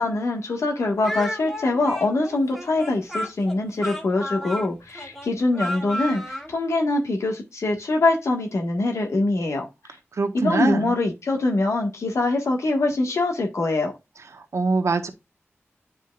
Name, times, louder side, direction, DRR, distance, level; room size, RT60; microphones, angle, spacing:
voice 1, 0.0-9.7 10.3-13.9, left 2 dB, 90° left, 1.5 m, -23 dB
Speech, 1.0-6.5, equal, ahead, 1.9 m, -32 dB
voice 2, 10.2-10.9 14.5-15.1, right 4 dB, 80° right, 1.1 m, -23 dB
9.0 x 4.5 x 2.4 m
wide cardioid pair, 60°, 5 cm